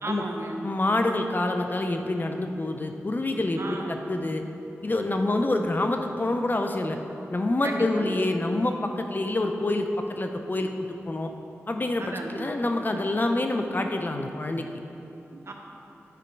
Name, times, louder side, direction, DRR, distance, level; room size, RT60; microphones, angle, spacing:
voice 1, 0.0-0.6 3.6-4.0 7.6-8.2 12.0-12.4 15.3-15.5, right 2 dB, 55° right, 1 dB, 0.9 m, -34 dB
voice 2, 0.6-4.4 4.8-7.0 7.3-10.7 11.1-11.3 11.7-14.7, left 2 dB, 40° left, 5 dB, 0.6 m, -27 dB
9.3 x 5.0 x 4.6 m, 3.0 s
cardioid pair, 50°, 5 cm